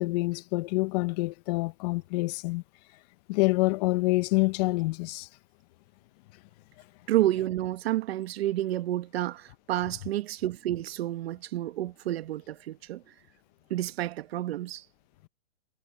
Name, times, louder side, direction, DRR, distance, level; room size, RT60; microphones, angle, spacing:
voice 1, 0.0-2.6 3.3-5.3, left 23 dB, 35° left, 0.9 m, -27 dB
voice 2, 7.1-13.0 13.7-14.8, right 14 dB, 50° right, 1.3 m, -30 dB
hypercardioid pair, 145°, 38 cm